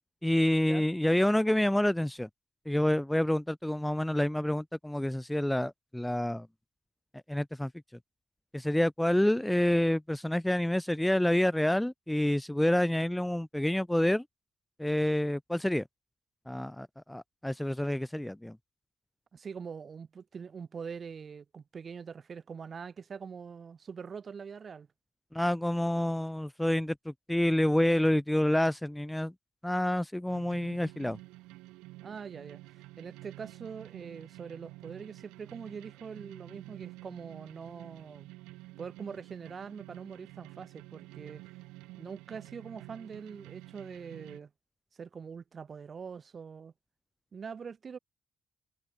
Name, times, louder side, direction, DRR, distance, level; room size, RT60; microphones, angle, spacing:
voice 1, 0.2-2.3 2.6-6.5 7.3-7.7 8.5-14.2 14.8-15.8 16.5-18.6 25.3-29.3 29.6-31.2, left 1 dB, 5° left, 1.3 m, -28 dB
voice 2, 19.3-24.9 32.0-38.3 38.8-41.4 42.0-44.5 44.9-46.7 47.3-48.0, right 6 dB, 50° right, 5.7 m, -43 dB
sound 1, 30.3-44.4, right 21 dB, 90° right, 2.3 m, -50 dB
supercardioid pair, 50°, 0 cm